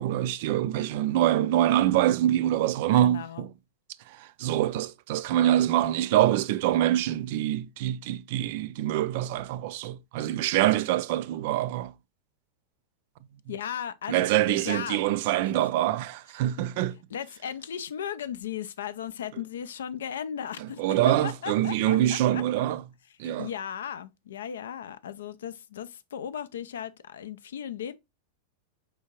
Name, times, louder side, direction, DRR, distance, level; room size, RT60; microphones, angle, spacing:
voice 1, 0.0-3.5 4.1-11.9 14.1-17.0 20.6-22.8 23.2-23.5, right 13 dB, 50° right, 0.3 m, -25 dB
voice 2, 3.0-3.5 13.5-15.0 16.5-16.7 17.1-22.4 23.2-28.0, left 9 dB, 65° left, 0.4 m, -36 dB
4.9 x 3.5 x 2.8 m
figure-of-eight pair, 90°, 0 cm